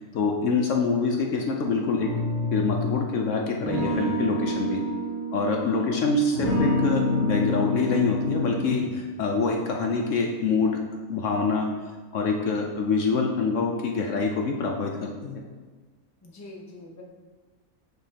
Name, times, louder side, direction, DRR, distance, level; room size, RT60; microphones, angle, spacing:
voice 1, 0.0-2.1 2.5-4.8 5.3-10.8 11.1-11.7 12.1-15.4, left 4 dB, 65° left, 1 dB, 0.9 m, -25 dB
sound 1, 2.0-3.1 3.6-5.9 6.3-8.9, left 1 dB, 65° right, 1.9 m, -27 dB
voice 2, 5.7-6.1 16.2-17.0, left 2 dB, 15° left, -2 dB, 0.6 m, -44 dB
6.8 x 6.0 x 2.8 m, 1.4 s
omnidirectional pair, 1.6 m